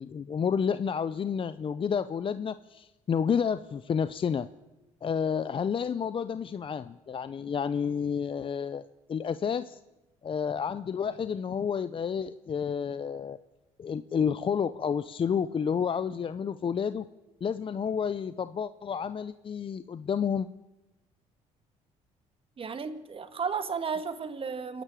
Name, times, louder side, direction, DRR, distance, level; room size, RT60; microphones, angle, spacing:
voice 1, 0.0-4.5 5.0-9.8 10.2-13.4 13.8-17.1 17.4-20.5, left 7 dB, 40° left, 14 dB, 0.6 m, -30 dB
voice 2, 22.6-24.8, right 5 dB, 40° right, 10 dB, 2.0 m, -33 dB
28.0 x 11.0 x 9.0 m, 1.1 s
supercardioid pair, 80°, 14 cm